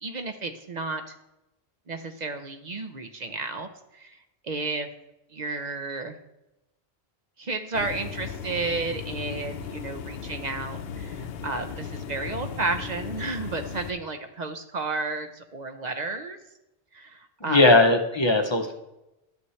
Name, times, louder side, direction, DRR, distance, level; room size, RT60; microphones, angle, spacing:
voice 1, 0.0-1.1 1.9-4.2 4.4-4.9 5.3-6.2 7.4-16.4 16.9-17.7, right 3 dB, 45° right, 7 dB, 0.7 m, -32 dB
sound 1, 7.7-13.9, left 7 dB, 75° left, 0.8 m, -37 dB
voice 2, 17.5-18.7, left 2 dB, 30° left, 5 dB, 0.7 m, -19 dB
11.5 x 8.3 x 3.2 m, 0.93 s
omnidirectional pair, 1.1 m